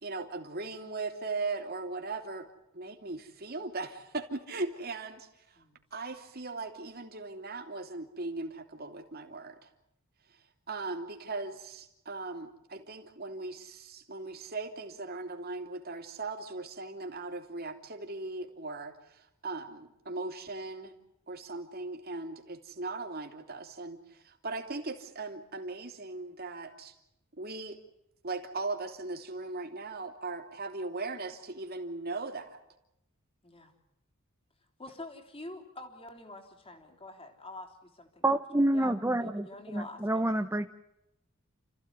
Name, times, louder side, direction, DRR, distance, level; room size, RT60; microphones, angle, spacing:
voice 1, 0.0-2.5 2.7-5.6 5.9-9.7 10.3-20.9 21.3-27.0 27.3-27.8 28.2-32.6, right 3 dB, 45° right, 6 dB, 3.0 m, -39 dB
voice 2, 33.4-33.7 34.8-40.3, left 2 dB, 25° left, 5 dB, 3.5 m, -47 dB
voice 3, 38.2-40.7, right 1 dB, 10° right, 6 dB, 0.8 m, -28 dB
30.0 x 15.0 x 9.7 m, 0.85 s
head